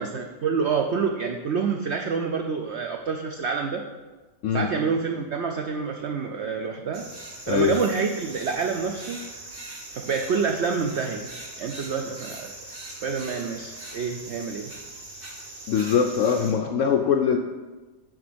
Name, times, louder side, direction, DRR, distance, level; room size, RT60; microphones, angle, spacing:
voice 1, 0.0-3.8 4.5-7.1 7.5-9.2 9.9-11.3 11.6-12.5 13.0-14.7, right 5 dB, 80° right, 3 dB, 0.6 m, -27 dB
sound 1, 6.9-16.5, right 2 dB, 35° right, 1.4 m, -41 dB
voice 2, 7.5-7.8 15.7-17.4, left 7 dB, 75° left, 4 dB, 0.7 m, -22 dB
10.5 x 3.6 x 5.1 m, 1.2 s
omnidirectional pair, 1.8 m